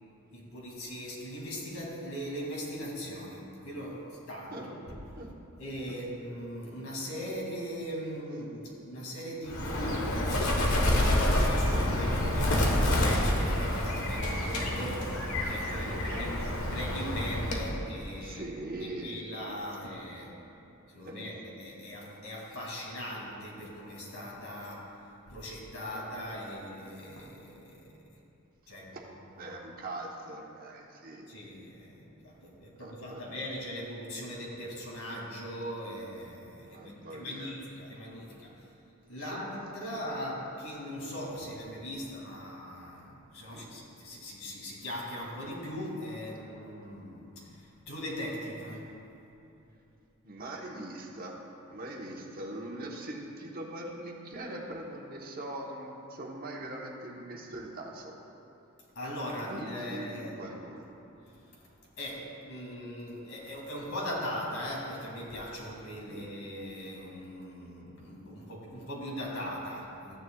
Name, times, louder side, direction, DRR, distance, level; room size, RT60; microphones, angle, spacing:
voice 1, 0.3-5.0 5.6-15.1 15.4-18.5 19.0-20.3 20.9-24.9 25.3-27.8 28.7-28.9 29.3-29.4 31.3-38.5 39.1-43.0 43.3-47.3 47.9-48.8 59.0-60.6 62.0-70.2, equal, 70° left, -3 dB, 2.3 m, -39 dB
Bird, 9.5-17.8, left 1 dB, 90° left, 1.3 m, -28 dB
voice 2, 15.9-16.4 18.2-19.3 21.0-21.4 25.9-26.6 28.9-29.0 29.4-31.3 32.8-33.2 36.7-37.6 39.2-39.4 39.9-40.0 43.5-43.7 50.2-51.3 51.7-58.1 59.4-60.8 66.1-66.3, right 1 dB, 45° right, -1 dB, 1.1 m, -42 dB
14.0 x 9.6 x 2.3 m, 2.8 s
head